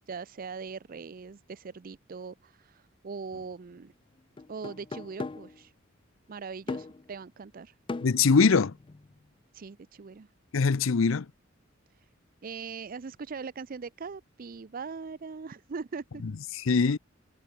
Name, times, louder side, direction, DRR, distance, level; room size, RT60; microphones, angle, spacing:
voice 1, 0.0-3.9 4.5-5.7 6.3-7.7 9.5-10.3 12.0-12.1 12.4-16.2, right 5 dB, 45° right, 0.5 m, -41 dB
sound 1, 3.3-3.5 4.4-5.6 6.7-7.1 7.9-9.2, left 3 dB, 25° left, 0.4 m, -39 dB
voice 2, 8.0-8.7 10.5-11.3 16.2-17.0, left 5 dB, 75° left, 0.6 m, -23 dB
head